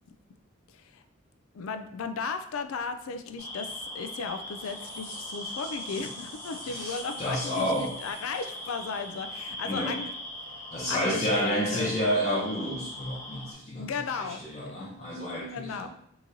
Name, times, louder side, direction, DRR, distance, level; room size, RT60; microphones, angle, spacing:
voice 1, 0.7-1.0 1.5-10.1 10.9-11.9 13.8-14.4 15.5-15.9, left 5 dB, 75° left, 8 dB, 0.4 m, -35 dB
sound 1, 3.4-13.5, left 1 dB, 10° left, 0.9 m, -40 dB
sound 2, 4.5-9.4, right 2 dB, 50° right, 0.9 m, -49 dB
voice 2, 6.6-8.0 9.6-10.0 10.7-15.9, equal, 30° left, -5 dB, 0.6 m, -30 dB
3.7 x 3.0 x 2.6 m, 0.70 s
head